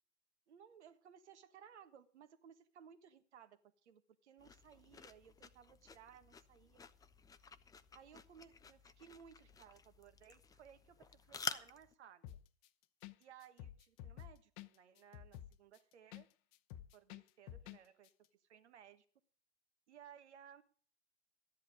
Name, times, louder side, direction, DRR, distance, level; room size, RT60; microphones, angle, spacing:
voice 1, 0.5-6.8 7.9-12.4 13.2-16.3 16.9-19.0 19.9-20.6, right 8 dB, 80° right, 10 dB, 1.6 m, -60 dB
sound 1, 4.4-11.9, left 5 dB, 10° left, 0.6 m, -50 dB
sound 2, 12.2-12.7 13.0-13.2 13.4-16.3 16.5-17.8 18.0-18.1, left 12 dB, 45° left, 0.9 m, -51 dB
13.5 x 10.5 x 5.0 m, 0.43 s
hypercardioid pair, 115°, 34 cm